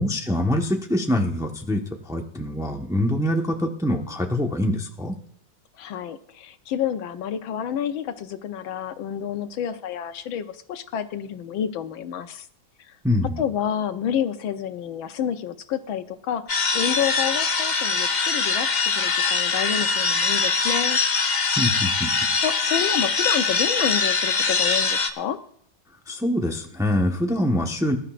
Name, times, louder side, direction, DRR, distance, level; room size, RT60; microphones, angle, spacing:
voice 1, 0.0-5.2 13.0-13.4 21.6-22.1 26.1-28.0, left 1 dB, ahead, 2 dB, 0.9 m, -24 dB
voice 2, 5.8-12.5 12.9-13.0 13.4-21.0 22.4-25.4, left 9 dB, 90° left, 8 dB, 1.7 m, -29 dB
sound 1, 16.5-25.1, left 4 dB, 55° left, 0.4 m, -23 dB
21.5 x 11.5 x 2.5 m, 0.66 s
omnidirectional pair, 2.1 m